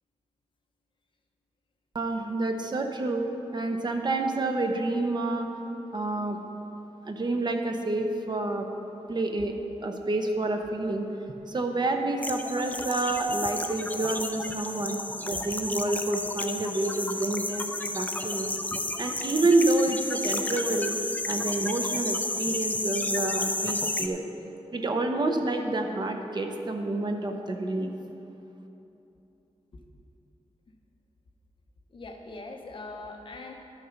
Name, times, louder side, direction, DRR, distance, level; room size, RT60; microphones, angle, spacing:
voice 1, 1.9-5.5 5.9-6.4 7.0-8.7 9.1-9.5 9.8-11.0 11.5-18.5 19.0-21.0 21.3-24.2 24.7-27.9, right 2 dB, 40° right, 4 dB, 0.8 m, -28 dB
sound 1, 12.2-24.1, left 2 dB, 15° left, 0.4 m, -32 dB
voice 2, 12.7-13.0 29.7-29.8 31.9-33.5, left 2 dB, 50° left, 2 dB, 1.0 m, -42 dB
12.0 x 6.6 x 5.8 m, 3.0 s
wide cardioid pair, 170°, 11 cm